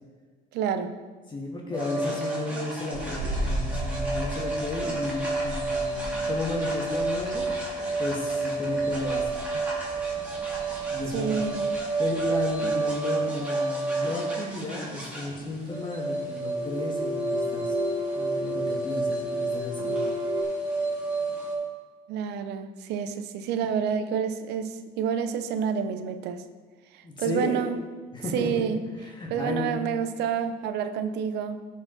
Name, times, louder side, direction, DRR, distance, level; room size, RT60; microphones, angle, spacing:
voice 1, 0.5-1.0 2.5-2.6 11.1-11.6 12.6-12.7 22.1-26.4 27.2-27.8 28.3-28.8 29.3-31.7, right 7 dB, 85° right, 10 dB, 0.7 m, -29 dB
voice 2, 1.3-7.7 8.0-9.4 10.9-11.5 12.0-17.8 18.1-20.1 27.0-27.6 28.1-28.7 29.0-30.0, left 2 dB, 25° left, -1 dB, 1.8 m, -33 dB
sound 1, 1.7-21.5, right 3 dB, 10° right, 2.7 m, -30 dB
sound 2, 2.9-12.8, right 1 dB, 50° right, 1.5 m, -37 dB
sound 3, 13.2-13.3 15.3-15.8 16.4-20.4, left 3 dB, 30° right, 1.3 m, -34 dB
14.0 x 4.8 x 4.0 m, 1.4 s
cardioid pair, 110°, 17 cm